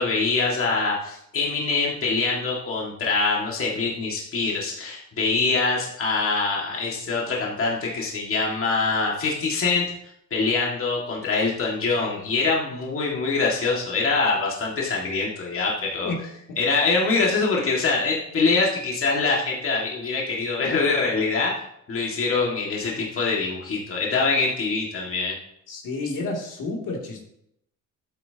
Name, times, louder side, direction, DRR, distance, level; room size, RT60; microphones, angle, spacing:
voice 1, 0.0-9.8 10.3-16.1 16.6-21.5 21.9-25.3, left 4 dB, 45° left, -3 dB, 2.0 m, -24 dB
voice 2, 25.7-27.2, left 3 dB, 80° left, -1 dB, 2.8 m, -30 dB
12.5 x 8.6 x 2.9 m, 0.75 s
cardioid pair, 130°, 32 cm